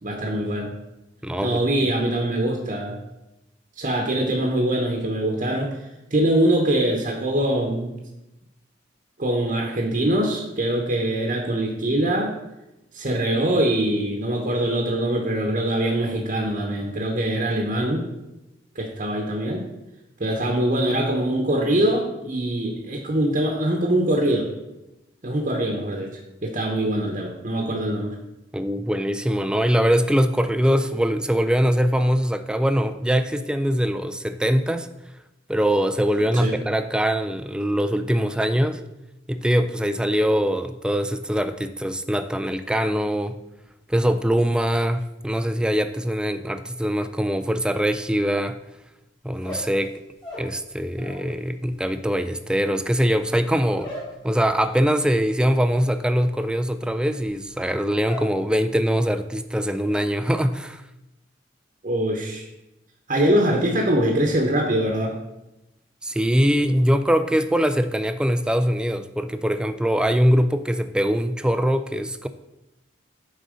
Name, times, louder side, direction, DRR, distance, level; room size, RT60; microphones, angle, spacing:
voice 1, 0.0-0.7 1.4-3.0 3.8-5.8 6.1-8.0 9.2-12.3 12.9-18.1 18.7-19.7 20.2-24.5 25.2-28.2 36.3-36.6 38.2-38.3 61.8-62.5 63.1-65.2, right 1 dB, 45° right, 0 dB, 1.0 m, -23 dB
voice 2, 1.2-1.6 28.5-34.9 35.5-38.8 39.3-43.4 43.9-48.6 49.2-50.0 50.4-53.9 54.2-60.8 66.0-72.3, equal, 5° right, 10 dB, 0.3 m, -22 dB
sound 1, 49.3-51.3 51.6-58.4 58.7-59.2 59.5-60.0, left 1 dB, 25° left, 2.9 m, -40 dB
9.2 x 4.0 x 5.1 m, 0.94 s
head